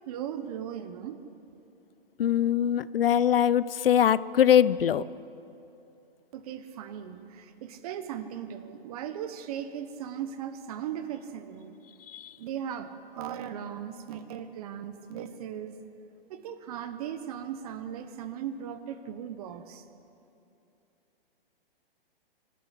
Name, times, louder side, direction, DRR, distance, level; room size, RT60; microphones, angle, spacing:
voice 1, 0.1-1.2 6.3-11.8 12.4-15.8 16.3-19.8, right 9 dB, 40° right, 10 dB, 1.3 m, -38 dB
voice 2, 2.2-5.0 12.1-12.3, left 10 dB, 70° left, 18 dB, 0.7 m, -22 dB
25.0 x 13.0 x 8.4 m, 2.7 s
hypercardioid pair, 140°, 30 cm